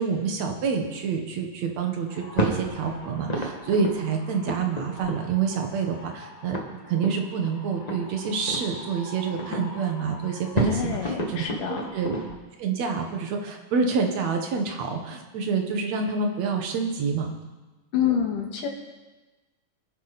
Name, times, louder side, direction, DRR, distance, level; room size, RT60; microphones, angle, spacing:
voice 1, 0.0-6.6 6.9-12.2 12.6-17.3, right 5 dB, 60° right, 3 dB, 2.5 m, -27 dB
sound 1, 2.1-12.3, right 1 dB, 35° left, 0.6 m, -33 dB
voice 2, 10.6-11.8 17.9-18.7, left 8 dB, 75° left, 1 dB, 3.4 m, -27 dB
23.5 x 10.5 x 4.2 m, 1.2 s
omnidirectional pair, 3.9 m